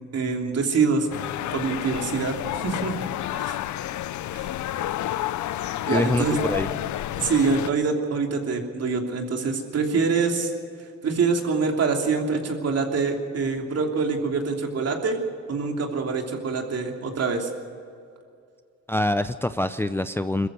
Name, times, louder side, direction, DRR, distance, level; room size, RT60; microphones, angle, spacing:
voice 1, 0.1-1.1 1.5-2.9 3.4-3.6 4.3-4.5 5.9-6.4 7.2-10.5 11.0-15.2 15.5-17.5, right 4 dB, 55° right, 2 dB, 3.1 m, -25 dB
sound 1, 1.1-7.7, left 13 dB, 75° left, 0.7 m, -30 dB
voice 2, 5.9-6.7 18.9-20.5, left 1 dB, 10° left, 11 dB, 0.6 m, -25 dB
21.5 x 14.5 x 8.3 m, 2.3 s
cardioid pair, 90°, 30 cm